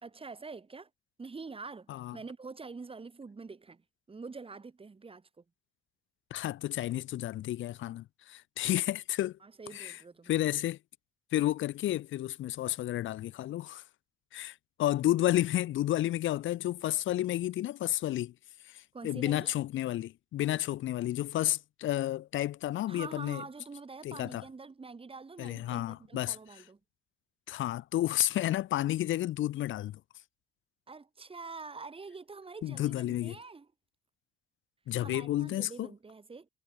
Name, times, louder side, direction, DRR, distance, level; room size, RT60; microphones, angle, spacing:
voice 1, 0.0-0.9 1.2-5.4 9.4-10.4 18.9-19.5 22.9-26.8 30.9-33.7 35.0-36.5, right 4 dB, 25° right, 3.2 m, -46 dB
voice 2, 6.3-9.4 9.7-10.0 10.3-10.8 11.3-13.8 14.3-18.3 18.7-23.4 24.0-24.4 25.4-26.4 27.5-30.0 32.6-33.3 34.9-35.9, left 14 dB, 75° left, 1.2 m, -31 dB
cardioid pair, 90°, 20 cm